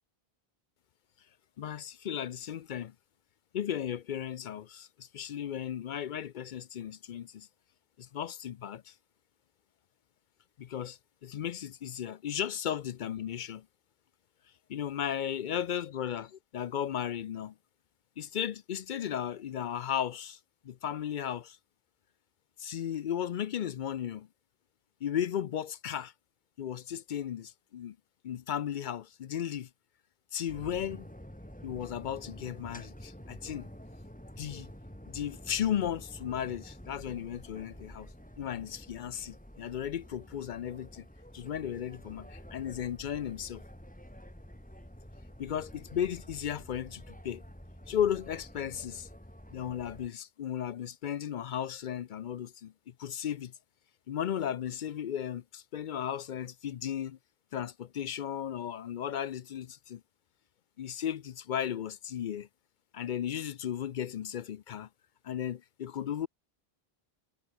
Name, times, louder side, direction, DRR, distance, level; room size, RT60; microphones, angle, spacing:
voice 1, 1.6-2.9 3.5-7.5 8.0-8.9 10.6-13.7 14.7-17.5 18.2-20.4 20.6-21.6 22.6-24.3 25.0-26.1 26.6-28.0 28.2-29.7 30.3-31.1 31.6-33.7 34.4-34.7 35.1-38.1 38.4-41.1 41.3-43.6 45.4-47.4 47.9-49.1 49.5-53.5 54.1-57.2 57.5-60.0 60.8-62.5 62.9-64.9 65.2-66.3, left 9 dB, 60° left, 0.6 m, -35 dB
sound 1, 30.5-50.1, equal, 10° left, 4.0 m, -49 dB
omnidirectional pair, 1.0 m